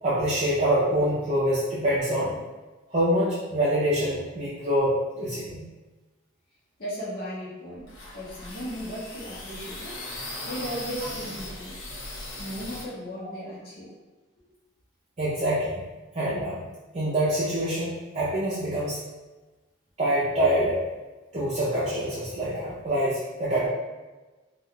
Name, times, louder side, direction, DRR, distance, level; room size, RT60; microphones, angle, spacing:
voice 1, 0.0-2.4 2.9-4.9 5.2-5.6 15.2-15.8 16.2-16.6 16.9-19.0 20.0-20.8 21.3-23.7, right 1 dB, 35° right, -9 dB, 0.5 m, -25 dB
voice 2, 6.8-9.9 10.4-11.8 12.4-13.9, equal, 55° left, -8 dB, 0.8 m, -36 dB
sound 1, 7.8-12.8, left 1 dB, 85° left, 0.7 m, -38 dB
2.3 x 2.2 x 3.6 m, 1.2 s
head